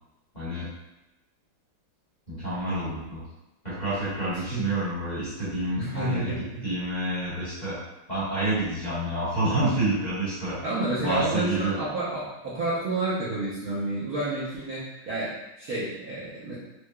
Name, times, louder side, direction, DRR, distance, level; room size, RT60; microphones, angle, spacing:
voice 1, 0.3-0.7 2.3-3.2 3.6-6.3 6.6-7.8 8.1-10.6 11.0-11.7, right 1 dB, 25° left, -13 dB, 1.1 m, -28 dB
voice 2, 5.8-6.6 10.6-16.5, right 2 dB, 60° right, -10 dB, 1.0 m, -30 dB
4.7 x 2.1 x 2.2 m, 0.99 s
omnidirectional pair, 2.1 m